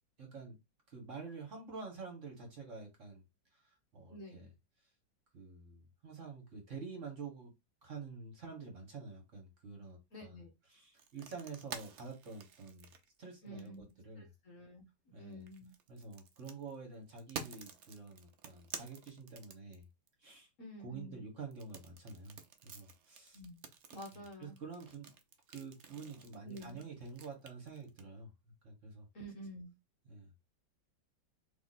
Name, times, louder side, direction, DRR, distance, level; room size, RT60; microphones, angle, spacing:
voice 1, 0.2-0.6 0.9-3.2 3.5-4.5 5.3-7.5 7.8-10.4 10.7-12.9 13.2-14.3 15.1-15.5 15.9-19.8 20.2-20.5 20.8-23.4 24.1-25.1 25.5-28.3 28.6-29.1 30.0-30.3, right 4 dB, 45° right, 1.7 m, -48 dB
voice 2, 4.1-4.5 10.1-10.5 13.4-13.8 14.2-14.9 15.2-15.7 20.6-21.2 23.3-23.6 23.9-24.6 26.5-26.8 29.1-29.7, right 1 dB, 50° left, 1.3 m, -49 dB
sound 1, 11.0-13.9 15.3-20.1 21.5-28.0, right 6 dB, 70° right, 0.6 m, -50 dB
3.4 x 3.0 x 4.1 m
omnidirectional pair, 2.0 m